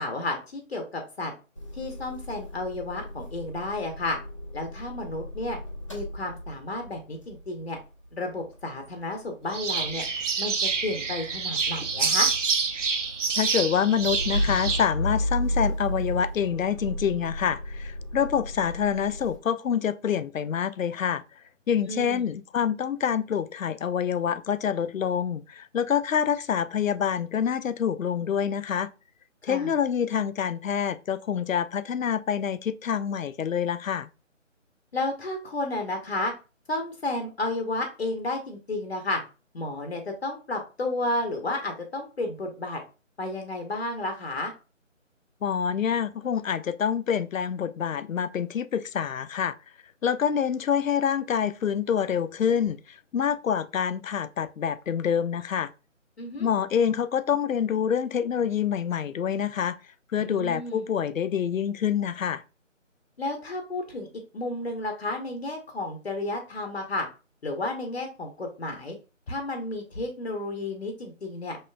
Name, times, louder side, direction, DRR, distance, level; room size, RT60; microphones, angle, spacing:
voice 1, 0.0-1.3 1.7-4.2 4.5-5.6 5.9-7.8 8.1-10.0 10.4-12.3 21.9-22.3 29.4-29.7 34.9-36.3 36.7-39.2 39.5-42.8 43.2-44.5 56.2-56.5 60.2-60.9 63.2-64.1 64.3-67.1 67.4-69.0 69.3-71.6, left 2 dB, 55° left, 0.8 m, -32 dB
Motor vehicle (road) / Engine starting / Idling, 1.6-9.3 9.5-19.4, equal, 25° left, 0.6 m, -34 dB
sound 1, 9.5-14.8, right 5 dB, 70° right, 0.7 m, -27 dB
voice 2, 13.4-21.2 21.7-28.9 29.4-34.1 45.4-49.5 50.0-55.7 56.4-59.8 60.1-62.4, left 8 dB, 90° left, 0.5 m, -26 dB
5.4 x 2.9 x 2.2 m
figure-of-eight pair, 160°, 38 cm